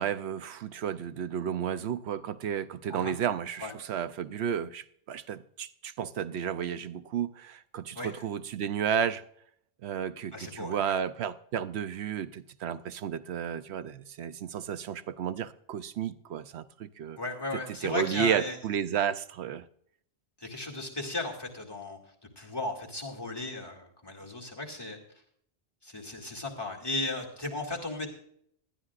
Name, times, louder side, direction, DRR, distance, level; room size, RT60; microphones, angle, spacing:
voice 1, 0.0-9.2 9.8-17.2 17.8-19.6, right 8 dB, 80° right, 0.9 m, -32 dB
voice 2, 10.3-10.9 17.1-18.6 20.4-22.0 22.4-25.0 25.8-28.1, left 2 dB, 20° left, 2.3 m, -36 dB
19.5 x 12.0 x 2.4 m
omnidirectional pair, 1.1 m